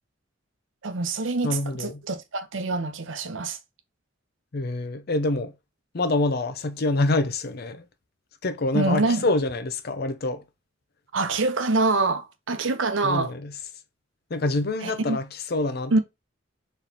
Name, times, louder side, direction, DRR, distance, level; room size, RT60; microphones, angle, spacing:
voice 1, 0.8-3.6 8.7-9.3 11.1-13.3 14.8-15.2 15.9-16.0, right 3 dB, 70° right, 0.8 m, -25 dB
voice 2, 1.4-2.0 4.5-5.5 5.9-7.8 8.4-10.4 13.0-13.6 14.3-16.0, left 2 dB, 50° left, 0.6 m, -26 dB
4.2 x 3.2 x 2.8 m
head